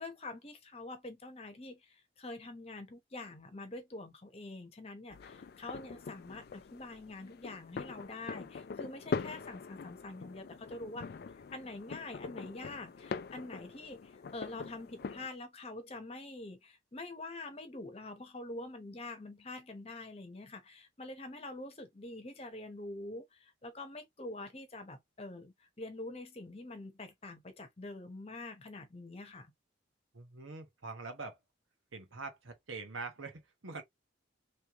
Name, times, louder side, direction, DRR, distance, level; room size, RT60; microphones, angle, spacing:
voice 1, 0.0-11.1 11.5-29.5, left 2 dB, 30° left, 0.9 m, -45 dB
sound 1, 5.1-15.3, left 5 dB, 50° left, 0.3 m, -43 dB
voice 2, 30.1-31.4 31.9-33.8, right 3 dB, 85° right, 1.2 m, -44 dB
3.2 x 3.1 x 2.9 m
head